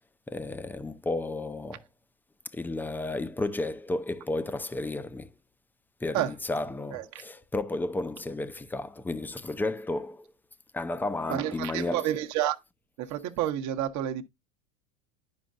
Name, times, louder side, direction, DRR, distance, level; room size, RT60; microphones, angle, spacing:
voice 1, 0.3-1.9 2.5-5.3 6.0-10.3 10.7-12.1, left 2 dB, 5° left, 0.5 m, -32 dB
voice 2, 6.9-7.2 11.3-12.6 13.0-14.2, right 12 dB, 45° right, 1.0 m, -29 dB
11.0 x 5.2 x 2.5 m
hypercardioid pair, 95°, 40 cm